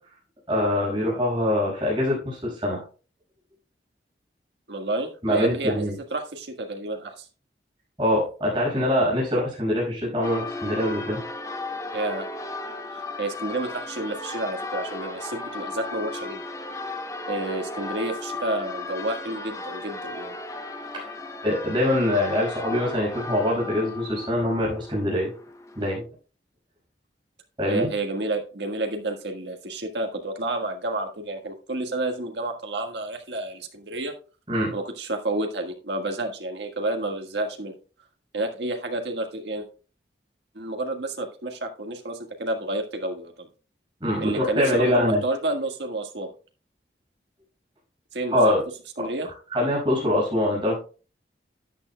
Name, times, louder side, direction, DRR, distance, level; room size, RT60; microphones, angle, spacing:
voice 1, 0.5-2.8 5.2-6.0 8.0-11.2 20.9-21.1 21.4-25.3 25.8-26.0 27.6-27.9 34.5-34.7 44.0-45.2 48.3-48.6 49.5-50.8, left 1 dB, 25° right, -3 dB, 5.5 m, -24 dB
voice 2, 4.7-7.3 11.9-12.3 12.9-16.4 16.7-17.0 17.3-20.3 27.6-34.1 34.7-37.7 38.3-39.7 40.5-43.5 44.2-46.3 48.1-48.5 49.0-49.3, right 2 dB, 80° right, 4 dB, 1.5 m, -30 dB
Church bell, 10.2-26.0, left 2 dB, 15° left, 0.8 m, -35 dB
12.5 x 9.0 x 2.2 m, 0.36 s
head